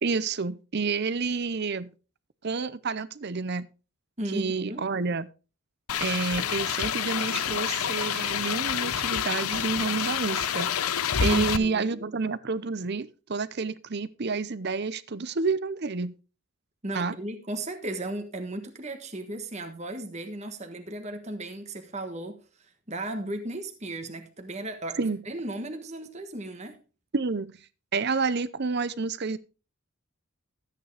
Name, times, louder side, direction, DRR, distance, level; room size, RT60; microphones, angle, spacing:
voice 1, 0.0-1.9 2.4-3.7 4.3-5.3 6.0-10.7 11.2-16.1 16.9-17.2 25.0-25.2 27.1-27.5 27.9-29.4, right 4 dB, 50° right, 0.7 m, -29 dB
voice 2, 4.2-4.9 11.2-12.0 16.8-26.8, right 1 dB, 30° right, 1.4 m, -35 dB
sound 1, 5.9-11.6, left 8 dB, 85° left, 0.7 m, -28 dB
13.5 x 9.1 x 3.4 m
head